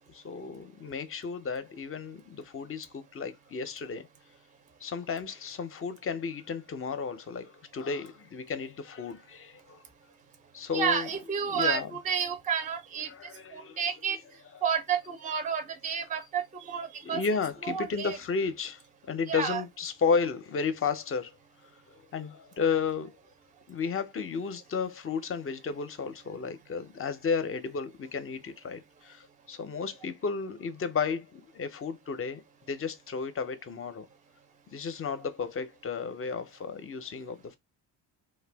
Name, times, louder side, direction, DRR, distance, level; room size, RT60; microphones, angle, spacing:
voice 1, 0.0-4.1 4.8-9.8 10.5-11.1 11.4-11.9 13.1-13.9 17.0-18.8 19.1-21.3 22.1-23.2 23.7-32.4 32.7-34.1 34.7-37.6, left 5 dB, 30° left, 0.5 m, -33 dB
voice 2, 10.7-13.1 13.5-14.2 14.6-17.2 17.6-18.2 19.3-19.6, right 7 dB, 20° right, 0.5 m, -30 dB
2.6 x 2.2 x 3.4 m
cardioid pair, 100°, 45 cm